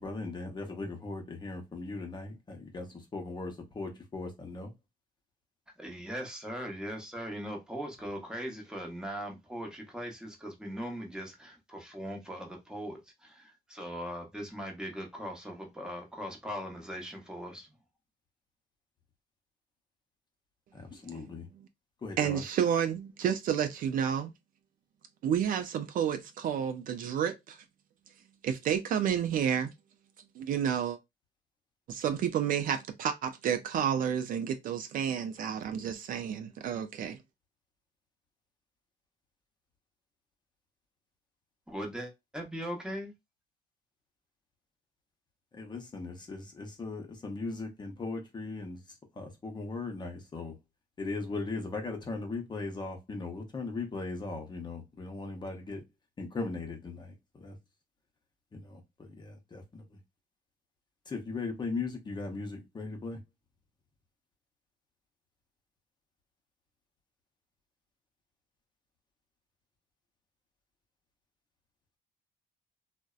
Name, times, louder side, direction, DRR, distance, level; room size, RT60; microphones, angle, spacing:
voice 1, 0.0-4.7 20.7-21.5 22.0-22.4 45.5-48.8 49.2-50.5 51.0-55.8 56.2-57.6 58.5-59.8 61.1-63.2, left 3 dB, 25° left, 0.7 m, -38 dB
voice 2, 5.8-17.7 41.7-43.1, equal, 5° right, 0.8 m, -40 dB
voice 3, 22.2-24.3 25.2-27.6 28.4-29.7 30.4-31.0 31.9-37.2, right 8 dB, 55° right, 0.4 m, -30 dB
2.6 x 2.1 x 2.3 m
cardioid pair, 110°, 17 cm